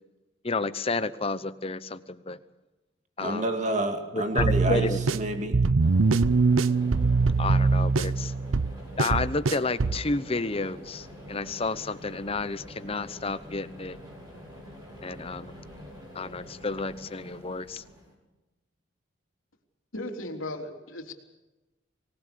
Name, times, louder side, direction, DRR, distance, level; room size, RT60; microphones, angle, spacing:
voice 1, 0.4-2.4 3.2-3.4 4.1-5.1 7.4-8.3 9.0-14.0 15.0-15.5 16.1-17.8, left 3 dB, 30° left, 13 dB, 0.9 m, -31 dB
voice 2, 3.2-5.6, right 1 dB, 35° right, 5 dB, 2.4 m, -29 dB
sound 1, 4.4-10.0, right 4 dB, 80° right, 0.7 m, -23 dB
sound 2, 5.8-18.1, equal, 20° right, 7.9 m, -46 dB
voice 3, 19.9-21.1, left 1 dB, 80° left, 2 dB, 3.6 m, -36 dB
25.0 x 19.5 x 6.9 m, 1.1 s
head